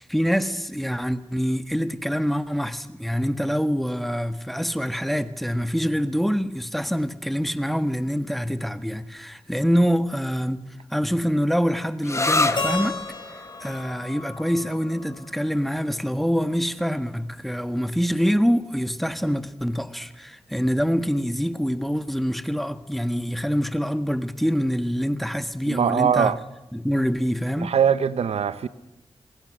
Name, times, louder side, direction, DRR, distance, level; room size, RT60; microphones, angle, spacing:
voice 1, 0.1-13.0 13.3-26.4 26.7-27.8, equal, ahead, 1.5 m, -25 dB
sound 1, 12.0-19.4, left 2 dB, 30° left, 1.7 m, -31 dB
Keyboard (musical), 12.6-15.5, left 3 dB, 50° left, 7.1 m, -33 dB
voice 2, 25.7-26.4 27.6-28.7, right 7 dB, 85° right, 0.9 m, -21 dB
26.5 x 20.5 x 6.4 m
cardioid pair, 55°, 10 cm